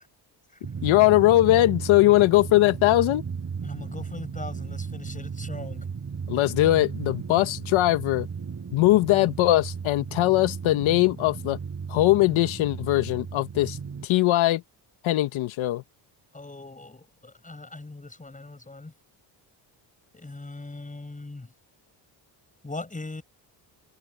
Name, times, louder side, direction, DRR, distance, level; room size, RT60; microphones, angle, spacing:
Drum, 0.6-14.1, right 6 dB, 35° right, 5.4 m, -35 dB
voice 1, 0.8-3.2 6.3-8.3 8.7-11.6 11.9-13.8 14.0-14.6 15.0-15.8, left 16 dB, 85° left, 1.4 m, -20 dB
voice 2, 3.6-5.9 16.3-18.9 20.1-21.5 22.6-23.2, left 2 dB, 15° left, 7.4 m, -40 dB
cardioid pair, 100°, 46 cm